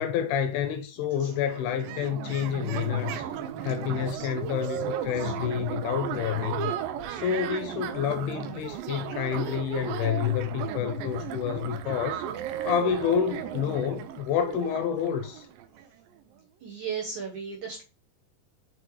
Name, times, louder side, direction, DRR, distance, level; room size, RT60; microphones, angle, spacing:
voice 1, 0.0-3.3 3.6-6.7 7.1-12.3 12.7-15.5, left 8 dB, 80° left, 2.3 m, -28 dB
sound 1, 1.0-1.1 1.3-15.9, right 10 dB, 90° right, 2.0 m, -35 dB
voice 2, 16.6-17.8, right 6 dB, 65° right, 1.9 m, -35 dB
6.3 x 5.4 x 3.2 m
omnidirectional pair, 5.0 m